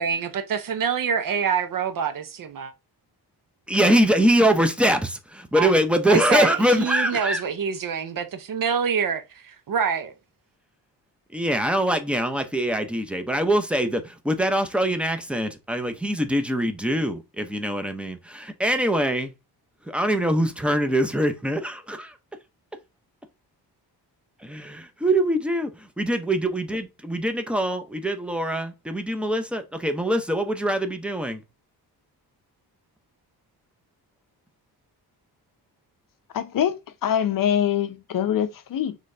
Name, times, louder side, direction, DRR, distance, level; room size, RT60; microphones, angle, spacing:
voice 1, 0.0-2.7 5.6-5.7 6.1-10.1, right 6 dB, 55° right, 0.7 m, -26 dB
voice 2, 3.7-7.4 11.3-19.3 19.8-22.2 24.4-25.7 26.0-31.4, right 1 dB, 5° right, 0.6 m, -23 dB
voice 3, 36.3-39.0, left 9 dB, 55° left, 0.6 m, -24 dB
4.0 x 3.2 x 3.3 m
cardioid pair, 115°, 40 cm